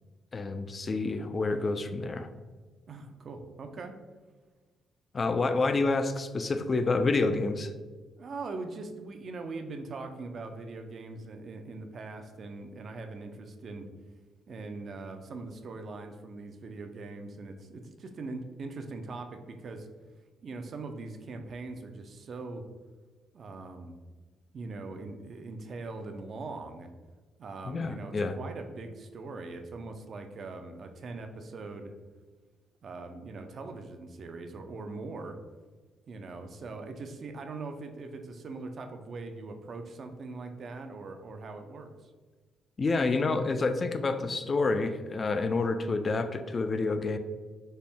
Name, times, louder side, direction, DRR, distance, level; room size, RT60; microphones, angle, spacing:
voice 1, 0.3-2.3 5.1-7.7 27.7-28.3 42.8-47.2, left 3 dB, 35° left, 9 dB, 0.3 m, -28 dB
voice 2, 2.9-4.0 8.2-13.9 14.5-19.9 20.4-22.7 23.3-24.0 24.5-26.9 27.4-31.9 32.8-35.4 36.1-42.1, right 3 dB, 50° right, 5 dB, 0.4 m, -41 dB
4.2 x 2.0 x 3.4 m, 1.3 s
cardioid pair, 90°, 0 cm